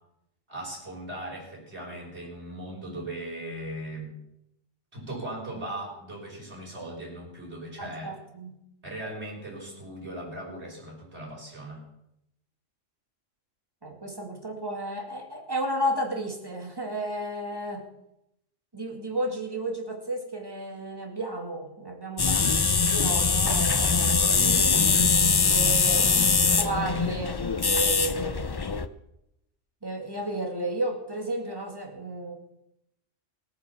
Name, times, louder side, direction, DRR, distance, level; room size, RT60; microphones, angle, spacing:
voice 1, 0.5-4.2 4.9-8.1 8.8-11.8, right 1 dB, 60° right, -3 dB, 6.2 m, -38 dB
voice 2, 7.8-8.6 13.8-17.8 18.7-28.5 29.8-32.4, right 1 dB, 20° right, 2 dB, 2.5 m, -33 dB
sound 1, 22.2-28.9, left 5 dB, 40° left, 0.3 m, -22 dB
17.5 x 9.3 x 7.2 m, 0.82 s
omnidirectional pair, 1.3 m